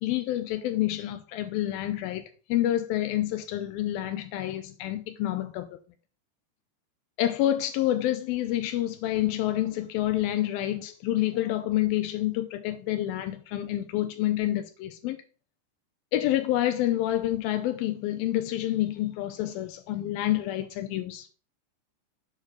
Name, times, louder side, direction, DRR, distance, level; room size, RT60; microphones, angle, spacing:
voice 1, 0.0-5.7 7.2-15.2 16.1-21.3, left 13 dB, 90° left, 2.0 m, -28 dB
8.6 x 4.9 x 5.4 m
omnidirectional pair, 5.1 m